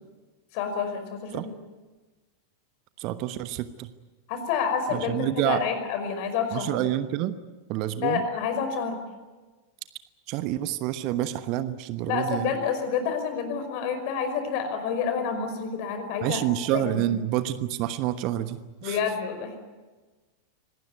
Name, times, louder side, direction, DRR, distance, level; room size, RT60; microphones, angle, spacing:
voice 1, 0.5-1.5 4.3-6.8 8.0-9.0 12.1-16.4 16.7-17.1 18.8-19.6, left 6 dB, 45° left, 7 dB, 5.3 m, -28 dB
voice 2, 3.0-3.9 4.9-5.6 6.5-7.4 7.7-8.2 10.3-12.5 16.2-19.0, right 13 dB, 40° right, 12 dB, 1.1 m, -28 dB
25.0 x 18.5 x 9.3 m, 1.3 s
figure-of-eight pair, 90°, 0 cm